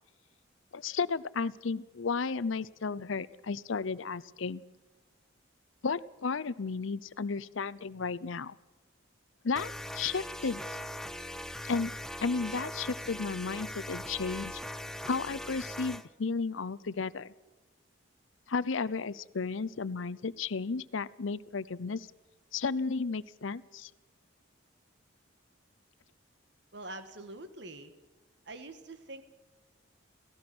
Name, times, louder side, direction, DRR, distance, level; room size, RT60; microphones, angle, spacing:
voice 1, 0.7-4.6 5.8-8.6 9.4-10.6 11.6-11.9 12.2-14.6 15.0-17.3 18.5-22.1 22.5-23.9, left 4 dB, 75° left, 18 dB, 0.6 m, -33 dB
sound 1, 9.5-16.1, left 1 dB, ahead, 0.6 m, -40 dB
voice 2, 26.7-27.9 28.4-29.2, right 2 dB, 60° right, 9 dB, 1.6 m, -44 dB
28.5 x 15.0 x 6.1 m, 1.1 s
head